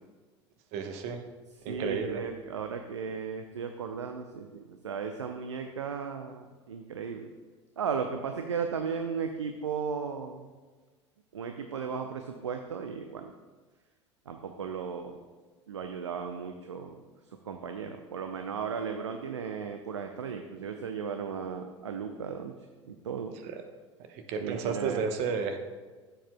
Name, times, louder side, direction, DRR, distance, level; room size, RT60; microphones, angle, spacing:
voice 1, 0.7-1.2 1.6-2.2 24.3-25.6, right 5 dB, 45° right, 6 dB, 1.0 m, -31 dB
voice 2, 1.7-7.3 7.8-10.5 11.3-13.3 14.3-15.2 15.7-17.0 17.5-22.5 22.9-23.4 24.4-25.1, right 6 dB, 75° right, 5 dB, 0.6 m, -35 dB
14.0 x 7.4 x 2.2 m, 1.4 s
figure-of-eight pair, 75°, 15 cm